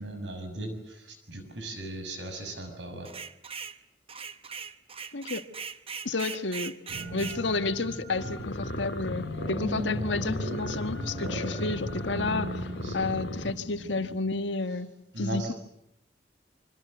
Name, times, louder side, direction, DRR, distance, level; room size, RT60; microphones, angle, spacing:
voice 1, 0.0-3.1 12.7-13.0 15.1-15.5, right 1 dB, 85° right, 6 dB, 6.4 m, -37 dB
sound 1, 3.0-3.8 4.1-7.4, right 6 dB, 30° right, 0.9 m, -39 dB
voice 2, 5.1-5.4 6.0-6.7 7.1-14.9 15.2-15.5, left 3 dB, 90° left, 9 dB, 1.5 m, -31 dB
sound 2, 6.9-14.2, equal, 65° right, 7.0 m, -38 dB
sound 3, 8.1-13.5, left 1 dB, 75° left, 1.8 m, -36 dB
26.0 x 24.5 x 7.7 m, 0.77 s
head